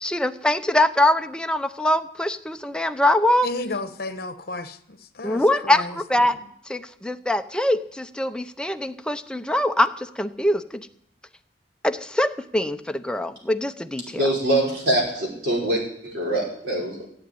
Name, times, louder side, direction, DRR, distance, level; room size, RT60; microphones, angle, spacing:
voice 1, 0.0-3.5 5.2-6.4 6.7-10.9 11.8-14.2, left 1 dB, 5° left, 0.6 m, -23 dB
voice 2, 3.4-4.8 5.2-6.0, left 2 dB, 55° left, 1.1 m, -32 dB
voice 3, 14.0-17.0, right 1 dB, 70° right, 5.4 m, -24 dB
15.0 x 8.7 x 9.4 m
head